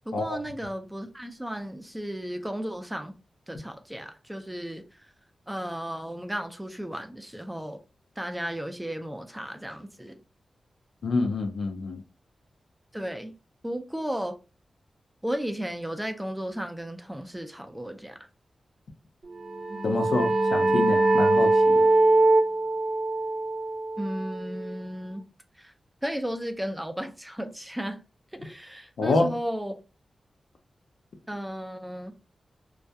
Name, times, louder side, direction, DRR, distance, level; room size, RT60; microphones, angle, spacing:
voice 1, 0.1-3.1 3.5-5.1 5.5-7.8 8.2-10.2 12.9-13.3 13.6-14.4 15.2-18.3 24.0-25.3 25.6-25.7 26.0-28.0 28.3-29.8 31.3-32.1, equal, 5° right, 0.4 m, -34 dB
voice 2, 11.0-12.0 19.8-21.9 29.0-29.3, left 3 dB, 85° left, 0.6 m, -27 dB
sound 1, 19.4-24.7, right 2 dB, 60° right, 0.7 m, -22 dB
2.3 x 2.1 x 2.7 m
cardioid pair, 75°, 0 cm